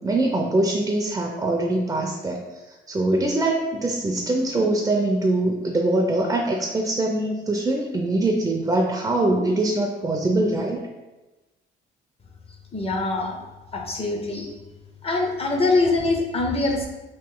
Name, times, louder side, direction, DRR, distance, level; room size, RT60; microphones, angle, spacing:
voice 1, 0.0-2.4 2.9-10.8, right 2 dB, 15° right, 0 dB, 0.4 m, -23 dB
voice 2, 12.7-13.4 13.7-14.5 15.0-16.9, left 3 dB, 30° left, 2 dB, 0.6 m, -23 dB
3.0 x 2.6 x 3.7 m, 1.1 s
cardioid pair, 90°, 20 cm